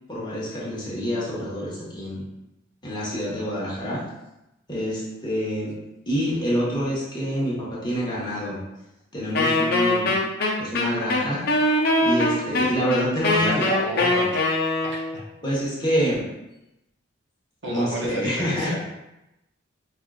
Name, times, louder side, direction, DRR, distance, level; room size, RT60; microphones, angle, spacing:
voice 1, 0.1-2.2 2.8-4.0 4.7-5.8 6.1-8.6 9.1-10.2 10.6-11.4 12.0-13.7 15.4-16.3 17.7-18.8, equal, 20° left, -7 dB, 1.0 m, -27 dB
Wind instrument woodwind instrument, 9.3-15.2, left 2 dB, 50° left, 0.6 m, -22 dB
voice 2, 13.4-14.5 14.8-15.3 17.6-18.8, right 1 dB, 60° right, -1 dB, 0.6 m, -31 dB
5.3 x 2.4 x 2.3 m, 0.93 s
head